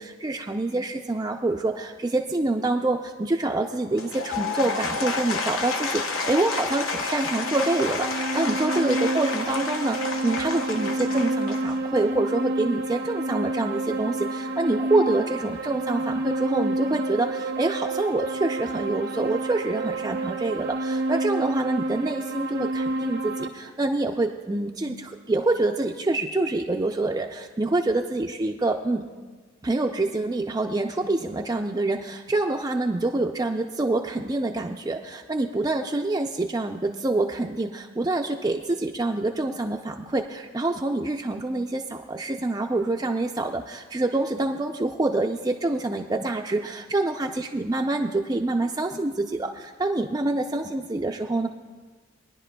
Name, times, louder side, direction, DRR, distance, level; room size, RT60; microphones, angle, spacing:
voice 1, 0.0-29.0 29.6-51.5, right 2 dB, 20° right, 2 dB, 0.3 m, -26 dB
Applause / Crowd, 3.9-12.1, left 4 dB, 85° left, 0.9 m, -30 dB
sound 1, 7.2-23.5, right 2 dB, 70° right, 0.7 m, -29 dB
22.0 x 10.5 x 2.2 m, 1.4 s
head